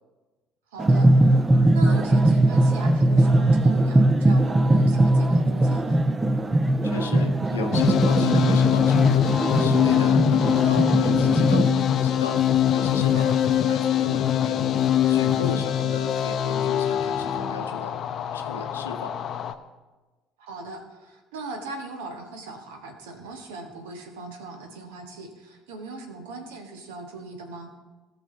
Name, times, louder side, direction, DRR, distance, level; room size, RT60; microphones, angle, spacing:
voice 1, 0.7-1.5 1.7-6.0 9.9-10.1 13.0-13.4 15.4-15.7 20.4-27.7, right 3 dB, 70° right, 4 dB, 1.3 m, -40 dB
sound 1, 0.8-11.7, right 1 dB, 20° right, 0.7 m, -20 dB
voice 2, 6.8-14.6 15.1-18.0 18.3-19.2, left 5 dB, 80° left, 7 dB, 0.7 m, -35 dB
sound 2, 7.7-19.5, left 10 dB, 45° left, 0.6 m, -23 dB
17.0 x 6.4 x 3.9 m, 1.2 s
figure-of-eight pair, 55°, 0 cm